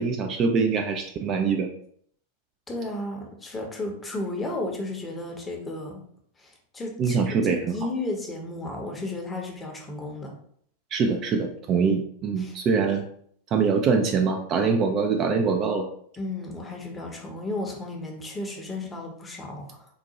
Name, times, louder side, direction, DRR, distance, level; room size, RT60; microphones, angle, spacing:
voice 1, 0.0-1.7 7.0-7.7 10.9-13.0 13.5-15.9, right 5 dB, 30° right, 3 dB, 0.3 m, -24 dB
voice 2, 2.7-6.0 6.4-7.2 7.5-10.3 12.4-12.6 16.2-19.9, left 2 dB, 15° left, 1 dB, 0.7 m, -33 dB
3.8 x 2.2 x 2.8 m, 0.63 s
figure-of-eight pair, 90°, 0 cm